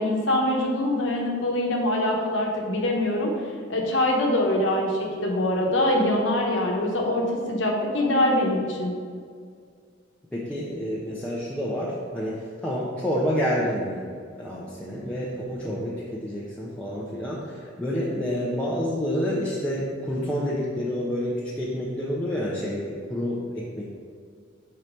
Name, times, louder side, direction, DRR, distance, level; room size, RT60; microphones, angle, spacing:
voice 1, 0.0-3.3 3.7-8.9, left 1 dB, 80° left, 0 dB, 1.0 m, -24 dB
voice 2, 10.3-14.1 14.4-23.8, equal, 10° left, -7 dB, 0.6 m, -28 dB
4.8 x 4.4 x 5.2 m, 2.1 s
head